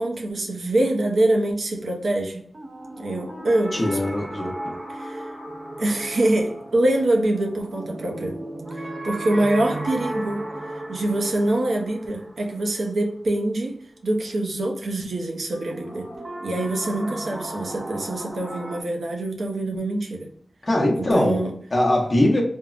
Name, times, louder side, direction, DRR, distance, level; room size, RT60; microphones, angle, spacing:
voice 1, 0.0-2.4 3.0-4.0 4.9-5.3 5.8-8.4 8.7-10.5 10.9-16.1 16.4-20.3 20.9-21.6, right 1 dB, 85° right, 0.6 m, -25 dB
sound 1, 2.5-13.4 15.5-18.8, right 1 dB, 35° right, 0.5 m, -35 dB
voice 2, 3.7-4.7 20.6-21.4 21.7-22.4, left 1 dB, 30° left, 0.7 m, -21 dB
3.4 x 2.0 x 2.4 m
wide cardioid pair, 115°, 0 cm